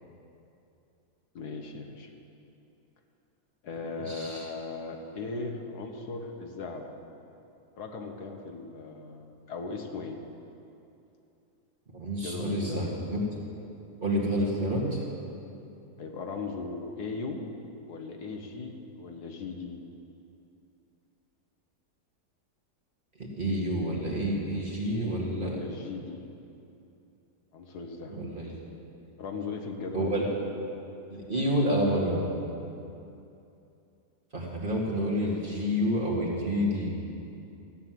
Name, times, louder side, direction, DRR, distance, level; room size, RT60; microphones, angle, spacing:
voice 1, 1.4-2.1 3.6-6.9 7.8-10.2 12.1-12.9 13.6-13.8 16.0-17.5 17.9-19.8 24.7-26.2 27.5-28.2 29.2-30.4, left 3 dB, 75° left, 3 dB, 1.7 m, -38 dB
voice 2, 3.9-4.5 11.9-13.2 14.0-15.0 23.2-25.6 28.1-28.5 29.9-30.3 31.1-32.3 34.3-36.9, equal, 30° right, -4 dB, 2.2 m, -29 dB
15.0 x 8.7 x 7.6 m, 2.7 s
omnidirectional pair, 1.7 m